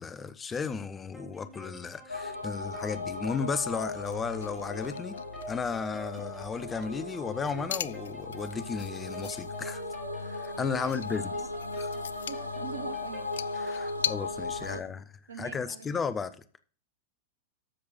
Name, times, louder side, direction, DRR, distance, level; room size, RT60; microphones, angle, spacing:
voice 1, 0.0-5.2 5.5-9.8 10.2-11.2 13.6-15.0 15.4-16.3, left 5 dB, 20° left, 0.8 m, -34 dB
sound 1, 1.1-13.9, equal, 5° left, 4.8 m, -48 dB
sound 2, 2.1-14.8, left 3 dB, 90° left, 0.8 m, -37 dB
sound 3, 4.0-14.1, left 10 dB, 65° left, 0.4 m, -41 dB
voice 2, 10.8-13.4 13.9-14.1 14.6-14.8 15.3-16.0, right 6 dB, 70° right, 1.3 m, -45 dB
13.0 x 6.6 x 4.3 m
figure-of-eight pair, 90°, 0 cm